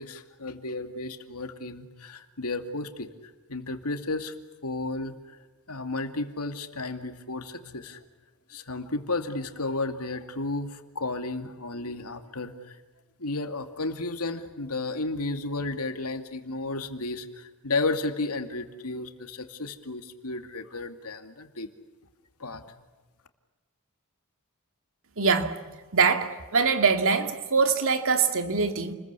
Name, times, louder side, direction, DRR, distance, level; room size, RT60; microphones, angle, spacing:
voice 1, 0.0-3.1 3.5-4.3 4.6-5.4 5.7-8.0 8.5-12.8 13.2-21.7 22.4-22.6, left 2 dB, 80° left, 2.4 m, -33 dB
voice 2, 25.2-25.5 25.9-28.9, right 5 dB, 65° right, 2.5 m, -23 dB
29.5 x 21.5 x 8.4 m
head